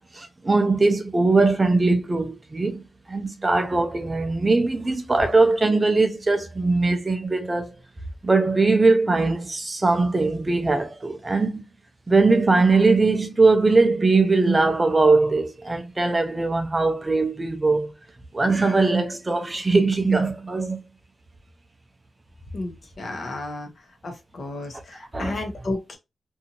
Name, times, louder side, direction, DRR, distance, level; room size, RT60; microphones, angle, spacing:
voice 1, 0.1-7.7 8.2-11.6 12.1-17.9 18.3-20.8 25.1-25.4, right 3 dB, 25° right, 0.5 m, -20 dB
voice 2, 22.5-23.7 24.0-26.0, left 2 dB, 50° left, 0.8 m, -32 dB
2.7 x 2.5 x 2.7 m
wide cardioid pair, 110°, 0 cm